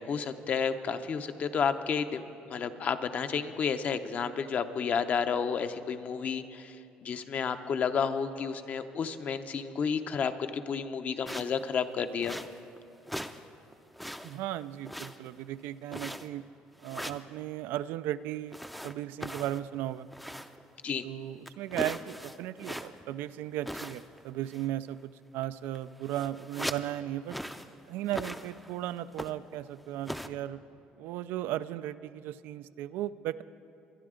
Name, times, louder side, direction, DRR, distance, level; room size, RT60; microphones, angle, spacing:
voice 1, 0.0-2.2 2.5-12.4 20.8-21.1, left 6 dB, 45° left, 9 dB, 0.7 m, -31 dB
sound 1, 11.3-11.6 12.2-12.8 13.1-13.5 13.7-14.5 14.9-15.4 15.9-16.4 16.8-17.3 18.5-20.7 21.0-21.1 21.5-23.1 23.6-24.2 24.5-24.8 25.4-25.5 25.8-26.9 27.3-27.7 28.1-28.7 29.1-29.6 30.1-30.3, equal, ahead, 0.5 m, -40 dB
voice 2, 14.2-16.4 16.8-20.1 21.0-27.4 27.9-30.6 31.0-33.4, right 13 dB, 80° right, 15 dB, 0.4 m, -36 dB
22.5 x 10.5 x 3.7 m, 2.8 s
cardioid pair, 110°, 3 cm